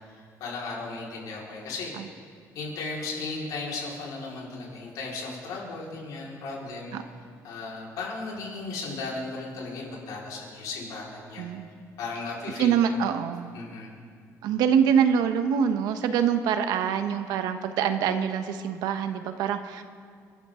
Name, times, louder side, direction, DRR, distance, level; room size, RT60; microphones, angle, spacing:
voice 1, 0.4-1.9 2.5-7.0 7.4-11.5 12.0-13.0 13.5-13.9, left 3 dB, 75° left, -4 dB, 4.8 m, -36 dB
voice 2, 11.4-11.7 12.6-13.5 14.4-19.8, right 8 dB, 90° right, 8 dB, 1.1 m, -25 dB
29.5 x 12.5 x 3.8 m, 2.1 s
cardioid pair, 155°, 6 cm